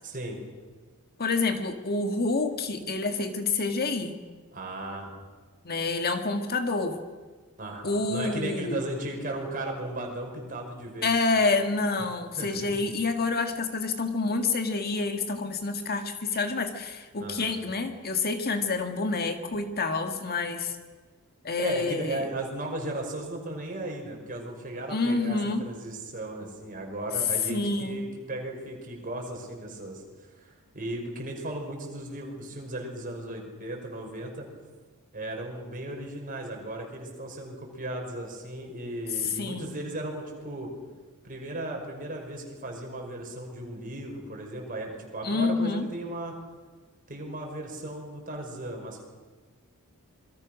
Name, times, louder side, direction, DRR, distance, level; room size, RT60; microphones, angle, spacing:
voice 1, 0.0-0.4 4.5-5.2 7.6-11.2 12.4-12.8 17.2-17.6 21.6-30.0 30.4-34.5 35.1-40.7 41.2-46.4 47.1-49.0, right 1 dB, 40° right, 1 dB, 5.6 m, -36 dB
voice 2, 1.2-4.2 5.7-7.0 7.8-8.8 11.0-20.8 21.4-22.2 24.9-25.7 27.5-28.1 39.2-39.8 45.2-45.9, left 3 dB, 45° left, 6 dB, 1.7 m, -28 dB
27.0 x 22.0 x 6.3 m, 1.4 s
head